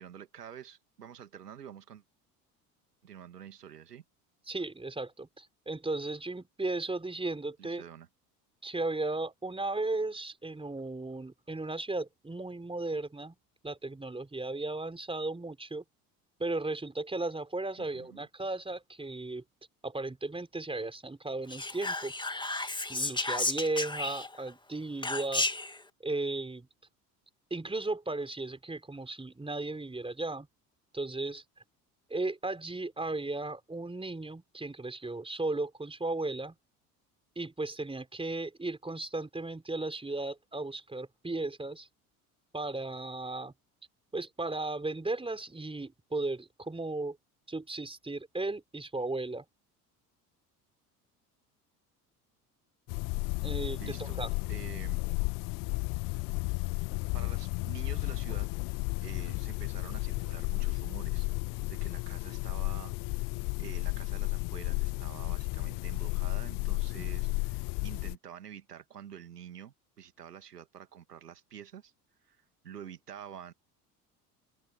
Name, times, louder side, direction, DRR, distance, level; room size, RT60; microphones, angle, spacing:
voice 1, 0.0-2.0 3.0-4.0 7.6-8.1 17.9-18.3 53.8-54.2 54.5-55.0 57.1-58.5 59.0-61.3 61.6-63.3 63.6-71.9 72.2-73.5, right 9 dB, 90° right, 2.0 m, -48 dB
voice 2, 4.5-7.8 8.6-13.4 13.6-15.8 16.4-19.4 19.8-22.1 22.9-25.5 26.0-26.7 27.5-30.5 30.9-31.4 32.1-36.5 37.4-41.9 42.5-43.5 44.1-47.2 47.5-49.4 53.4-54.3, right 2 dB, 10° right, 4.5 m, -35 dB
Whispering, 21.5-24.5 25.0-25.8, left 2 dB, 10° left, 2.5 m, -32 dB
sound 1, 52.9-68.1, left 29 dB, 50° left, 0.4 m, -33 dB
open air
hypercardioid pair, 65°, 46 cm